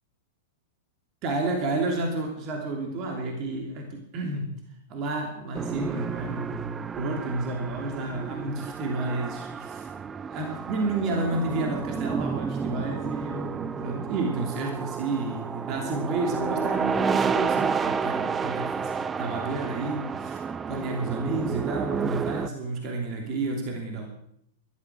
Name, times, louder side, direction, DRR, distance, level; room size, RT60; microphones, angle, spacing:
voice 1, 1.2-4.6 4.9-9.9 10.3-20.4 20.7-24.1, right 2 dB, 40° right, 2 dB, 3.0 m, -31 dB
sound 1, 5.5-22.5, right 6 dB, 20° right, 0.5 m, -31 dB
13.0 x 12.0 x 6.1 m, 0.71 s
hypercardioid pair, 115°, 0 cm